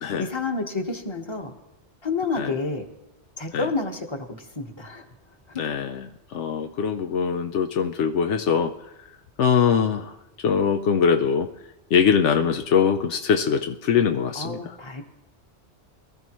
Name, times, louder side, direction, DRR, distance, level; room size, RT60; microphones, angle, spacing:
voice 1, 0.2-1.5 2.0-2.9 3.4-5.1 5.5-5.6 14.3-15.0, left 3 dB, 25° left, 4 dB, 1.3 m, -29 dB
voice 2, 5.6-8.7 9.4-10.1 10.4-11.5 11.9-14.7, left 7 dB, 80° left, 7 dB, 1.0 m, -22 dB
22.5 x 13.5 x 3.1 m, 0.98 s
omnidirectional pair, 1.2 m